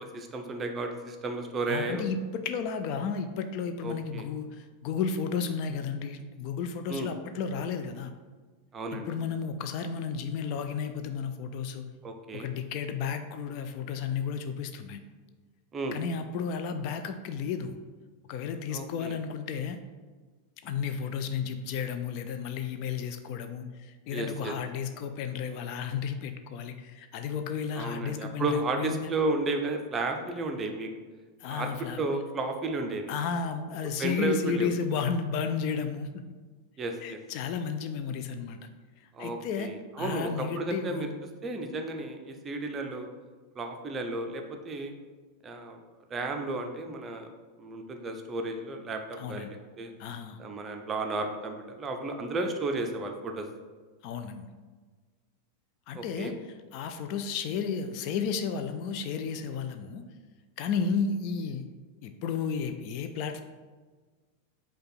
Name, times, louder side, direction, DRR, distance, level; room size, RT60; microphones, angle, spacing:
voice 1, 0.1-2.0 3.8-4.3 6.9-7.1 8.7-9.2 12.0-12.5 15.7-16.0 18.7-19.2 24.1-24.5 27.7-30.9 31.5-31.7 32.0-33.1 34.0-34.7 36.8-37.2 39.1-41.1 41.4-43.1 43.6-44.9 45.4-45.8 46.1-47.3 47.6-49.9 50.4-53.5 55.9-56.3, right 2 dB, 20° right, 4 dB, 0.5 m, -33 dB
voice 2, 1.7-2.2 2.4-4.5 4.8-8.1 9.1-11.9 12.3-15.0 15.9-17.8 18.3-19.8 20.6-23.7 24.1-29.1 31.4-32.0 33.1-36.2 37.0-38.6 39.2-39.7 40.0-41.1 49.2-49.5 50.0-50.4 54.0-54.5 55.9-56.3 56.7-60.0 60.6-61.6 62.0-63.4, left 6 dB, 45° left, 8 dB, 0.3 m, -33 dB
5.0 x 2.3 x 4.1 m, 1.4 s
figure-of-eight pair, 90°, 0 cm